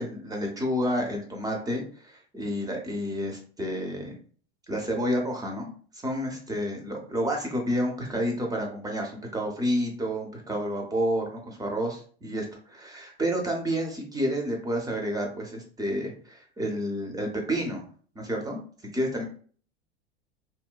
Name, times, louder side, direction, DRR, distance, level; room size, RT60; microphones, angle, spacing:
voice 1, 0.0-4.2 4.7-5.7 6.0-17.8 18.2-18.6 18.9-19.3, equal, 10° right, 1 dB, 0.7 m, -30 dB
2.8 x 2.1 x 2.2 m, 0.44 s
hypercardioid pair, 85°, 34 cm